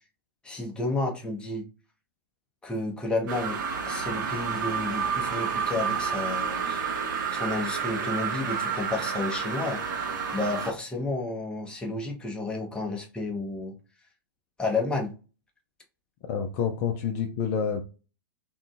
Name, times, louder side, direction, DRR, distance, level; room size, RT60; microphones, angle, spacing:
voice 1, 0.4-1.7 2.6-6.9 7.3-9.8 10.3-13.8 14.6-15.1, left 2 dB, 5° left, 0.8 m, -31 dB
sound 1, 3.3-10.7, right 6 dB, 55° right, 0.7 m, -30 dB
voice 2, 16.3-17.8, left 7 dB, 40° left, 0.4 m, -28 dB
3.6 x 2.3 x 2.3 m
figure-of-eight pair, 105°, 12 cm